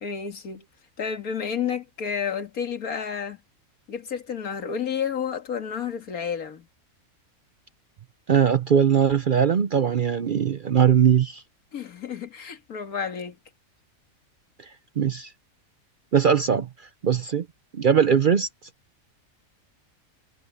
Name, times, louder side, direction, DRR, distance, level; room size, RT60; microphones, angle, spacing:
voice 1, 0.0-0.6 1.0-3.4 3.9-6.7 11.7-13.4, left 7 dB, 90° left, 2.2 m, -30 dB
voice 2, 8.3-11.4 15.0-15.3 16.1-16.7 17.0-17.5 17.7-18.5, right 7 dB, 55° right, 0.6 m, -20 dB
omnidirectional pair, 1.5 m